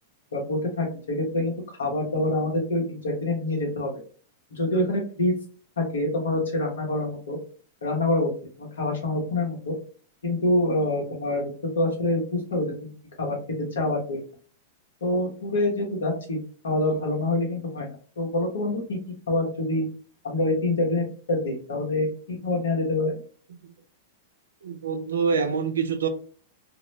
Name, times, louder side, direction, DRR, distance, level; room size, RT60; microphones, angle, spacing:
voice 1, 0.3-4.0 4.5-5.4 5.8-7.4 7.8-8.3 8.6-9.7 10.2-12.9 13.2-13.4 13.7-14.2 15.0-17.9 18.2-19.0 19.3-19.8 20.2-23.2, left 2 dB, 80° left, 1.0 m, -26 dB
voice 2, 24.6-26.1, right 5 dB, 85° right, 0.4 m, -26 dB
2.3 x 2.0 x 3.0 m
hypercardioid pair, 110°, 0 cm